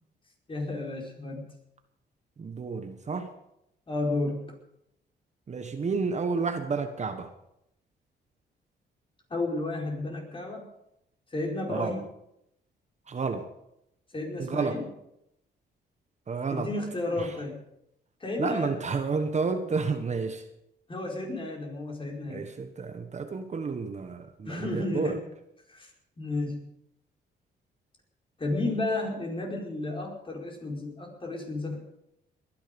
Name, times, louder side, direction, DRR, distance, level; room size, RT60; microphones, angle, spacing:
voice 1, 0.5-1.5 3.9-4.4 9.3-10.6 11.3-12.0 14.1-14.9 16.5-17.6 18.2-18.8 20.9-22.5 24.4-25.2 25.7-25.9 26.2-26.7 28.4-31.8, left 2 dB, 30° left, 0 dB, 4.8 m, -32 dB
voice 2, 2.4-3.3 5.5-7.3 11.7-12.0 13.1-13.5 14.4-14.8 16.3-16.7 17.2-17.3 18.4-20.4 22.3-25.2, right 4 dB, 40° right, 7 dB, 1.4 m, -30 dB
20.5 x 10.5 x 5.3 m, 0.82 s
cardioid pair, 90°, 18 cm